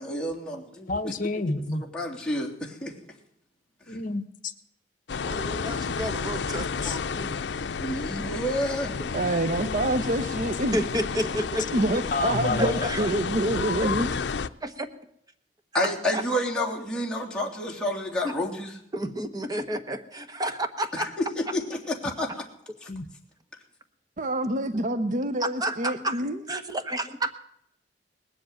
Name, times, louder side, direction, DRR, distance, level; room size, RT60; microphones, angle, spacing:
voice 1, 0.0-1.1 1.7-2.9 3.9-4.0 7.8-9.1 15.7-18.7 20.9-22.4 22.8-22.9, left 1 dB, 5° left, -3 dB, 3.3 m, -30 dB
voice 2, 0.9-1.8 3.9-4.5 6.8-7.0 12.1-12.9 22.9-23.0, left 2 dB, 50° left, 12 dB, 1.2 m, -29 dB
sound 1, 5.1-14.5, left 5 dB, 80° left, 0.5 m, -31 dB
voice 3, 5.2-7.4 9.0-9.1 10.6-11.8 12.6-13.1 13.8-13.9 14.6-14.9 15.8-16.2 18.2-18.3 18.9-21.1 25.4-26.2 26.5-27.3, right 1 dB, 20° right, 7 dB, 1.3 m, -31 dB
voice 4, 9.1-10.8 11.7-14.1 24.2-26.4, right 1 dB, 45° right, 10 dB, 0.7 m, -27 dB
19.5 x 7.9 x 9.1 m, 0.72 s
head